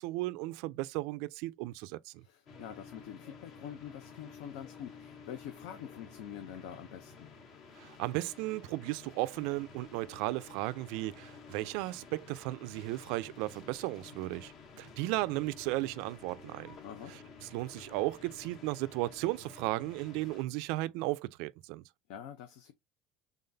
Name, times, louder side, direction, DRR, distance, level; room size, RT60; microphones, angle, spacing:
voice 1, 0.0-2.2 7.8-14.5 14.8-16.8 17.5-21.8, right 19 dB, 75° right, 0.3 m, -35 dB
voice 2, 2.2-7.3 16.8-17.1 22.1-22.7, left 9 dB, 80° left, 0.6 m, -46 dB
sound 1, 2.5-20.4, left 5 dB, 55° left, 1.3 m, -52 dB
3.8 x 3.6 x 2.6 m
cardioid pair, 155°, 0 cm